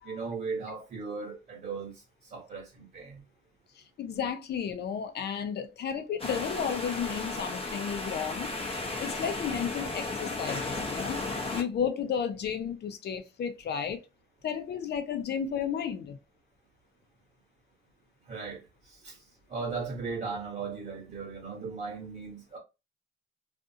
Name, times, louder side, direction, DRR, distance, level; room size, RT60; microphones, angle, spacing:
voice 1, 0.0-3.2 18.2-22.6, right 4 dB, 45° right, 1.2 m, -37 dB
voice 2, 3.8-8.5 9.0-11.2 11.5-14.0 14.4-16.2, left 7 dB, 55° left, 0.6 m, -33 dB
sound 1, 6.2-11.6, left 2 dB, 30° left, 0.8 m, -34 dB
2.5 x 2.4 x 2.7 m
cardioid pair, 90°, 20 cm